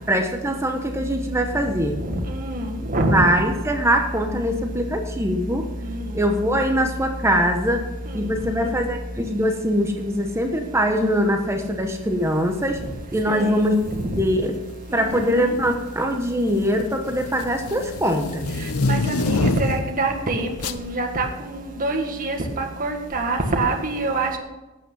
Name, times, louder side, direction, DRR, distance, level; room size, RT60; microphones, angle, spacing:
voice 1, 0.1-2.0 3.1-5.7 6.1-7.8 8.1-12.8 13.1-13.8 14.1-14.5 14.9-18.5, equal, 10° right, 4 dB, 1.1 m, -22 dB
voice 2, 2.1-3.2 8.2-8.3 8.6-8.7 13.3-13.6 14.9-15.5 18.8-24.3, right 2 dB, 40° right, 2 dB, 1.8 m, -25 dB
sound 1, 13.7-14.0 14.9-15.4 15.7-20.0 20.6-20.8, left 2 dB, 80° left, 0.8 m, -26 dB
12.0 x 8.9 x 5.5 m, 1.1 s
head